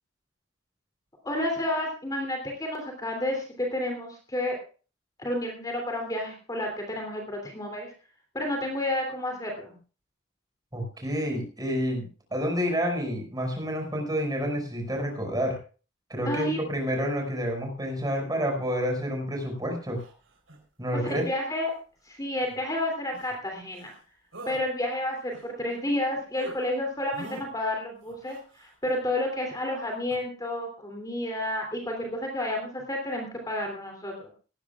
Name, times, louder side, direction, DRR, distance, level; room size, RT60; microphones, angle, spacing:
voice 1, 1.2-4.6 5.2-7.9 8.3-9.7 16.2-16.6 21.0-21.7 22.1-23.9 24.5-34.3, left 1 dB, 20° left, 2 dB, 3.0 m, -30 dB
voice 2, 10.7-15.6 16.1-20.0 20.8-21.2, equal, 20° right, 2 dB, 5.7 m, -29 dB
sound 1, 20.0-20.6 21.1-21.3 22.4-22.6 23.1-23.4 23.7-24.0 24.3-24.7 25.1-26.0 26.3-26.6 27.1-27.5 28.0-29.0 30.1-30.2, right 1 dB, 85° right, 4.0 m, -45 dB
18.5 x 15.0 x 2.4 m, 0.36 s
head